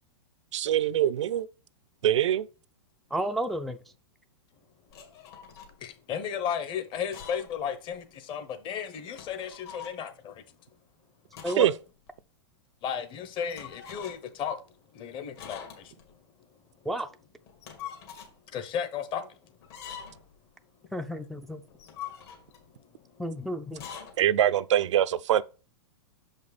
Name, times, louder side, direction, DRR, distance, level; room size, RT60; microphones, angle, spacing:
voice 1, 0.5-1.5 2.0-2.5 11.6-11.7 24.2-25.4, right 11 dB, 75° right, 0.5 m, -23 dB
voice 2, 3.1-3.8 11.4-11.7 16.9-17.1 20.9-21.6 23.2-23.8, equal, ahead, 0.4 m, -31 dB
sound 1, 4.9-5.7 6.9-7.6 7.9-8.0 9.0-10.0 11.3-11.8 12.1-12.2 13.5-14.3 15.4-16.1 17.5-18.3 19.6-20.3 21.7-22.7 23.7-24.1, left 8 dB, 60° left, 2.3 m, -44 dB
voice 3, 5.8-10.4 12.8-14.6 14.9-16.0 18.5-19.4 21.8-21.9 22.8-23.7, left 8 dB, 35° left, 1.0 m, -35 dB
6.5 x 5.2 x 4.1 m
hypercardioid pair, 125°, 15 cm